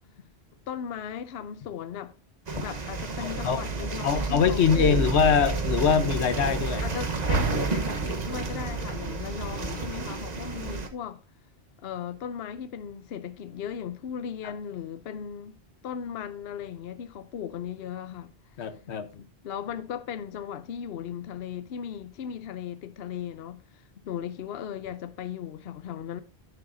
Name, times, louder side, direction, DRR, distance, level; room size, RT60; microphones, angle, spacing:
voice 1, 0.7-2.1 2.6-5.1 6.8-11.2 11.8-15.6 15.8-18.3 19.4-26.2, left 8 dB, 70° left, 0.9 m, -37 dB
sound 1, 2.5-10.9, right 4 dB, 40° right, 1.1 m, -30 dB
voice 2, 3.2-3.6 4.0-6.8 18.6-19.3, left 7 dB, 90° left, 1.2 m, -23 dB
10.0 x 9.6 x 2.6 m
omnidirectional pair, 1.1 m